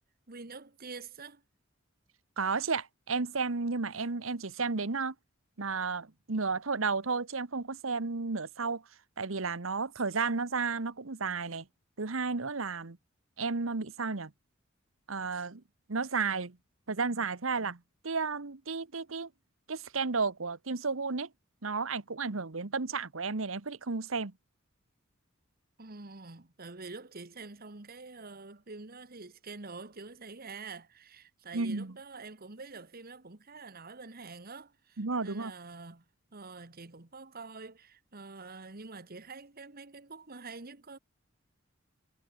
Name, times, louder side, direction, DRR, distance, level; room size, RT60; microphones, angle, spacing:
voice 1, 0.3-1.4 25.8-36.0 36.3-41.0, right 3 dB, 45° right, 1.7 m, -46 dB
voice 2, 2.4-5.1 5.6-8.8 9.2-11.7 12.0-13.0 13.4-14.3 15.1-15.6 15.9-16.6 16.9-19.3 19.7-21.3 21.6-24.3 31.5-32.0 35.0-35.5, right 4 dB, 75° right, 1.2 m, -33 dB
head